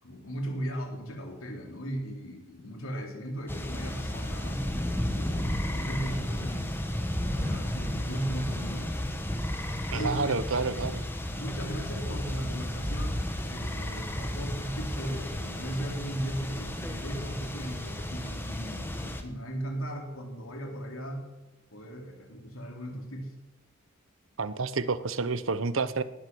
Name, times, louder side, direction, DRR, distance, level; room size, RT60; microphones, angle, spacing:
voice 1, 0.0-6.7 7.2-8.9 9.9-10.4 11.3-21.3 21.7-23.3, right 1 dB, 90° left, 2 dB, 3.7 m, -37 dB
sound 1, 3.5-19.2, left 1 dB, 10° left, 1.4 m, -33 dB
voice 2, 9.9-11.1 24.4-26.0, right 4 dB, 75° right, 14 dB, 0.9 m, -29 dB
19.0 x 11.5 x 6.3 m, 1.1 s
head